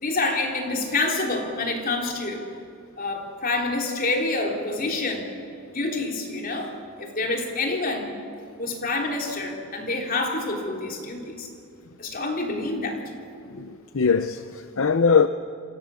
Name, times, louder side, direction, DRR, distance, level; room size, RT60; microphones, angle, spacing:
voice 1, 0.0-2.4 3.0-5.3 5.7-8.1 8.6-11.5 12.0-13.0, left 2 dB, 40° left, 3.6 m, -27 dB
voice 2, 13.5-15.3, left 5 dB, 60° left, 0.7 m, -21 dB
28.0 x 26.0 x 7.1 m
head